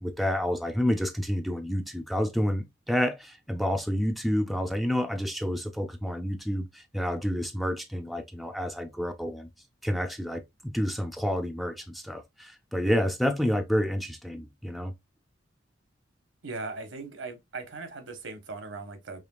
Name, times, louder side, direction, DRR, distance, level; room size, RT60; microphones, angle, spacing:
voice 1, 0.0-9.5 9.8-14.9, equal, ahead, 0.4 m, -29 dB
voice 2, 16.4-19.2, right 3 dB, 75° right, 1.0 m, -39 dB
4.9 x 3.1 x 2.3 m
head